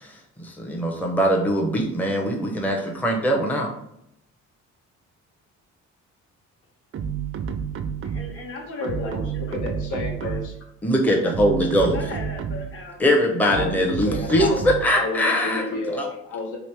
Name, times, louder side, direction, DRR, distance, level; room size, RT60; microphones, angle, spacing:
voice 1, 0.4-3.7 10.8-12.0 13.0-15.7 15.9-16.1, equal, 5° left, 0 dB, 0.6 m, -21 dB
sound 1, 6.9-8.5 8.8-10.6 11.2-12.8 13.5-15.0, right 7 dB, 45° right, 0.4 m, -30 dB
voice 2, 8.0-9.6 11.8-13.0 15.7-15.8, left 3 dB, 45° left, 1 dB, 1.0 m, -37 dB
voice 3, 8.8-10.4 13.3-14.7 14.9-16.6, left 3 dB, 75° left, 1 dB, 0.9 m, -31 dB
3.0 x 2.9 x 3.3 m, 0.77 s
cardioid pair, 90°, 30 cm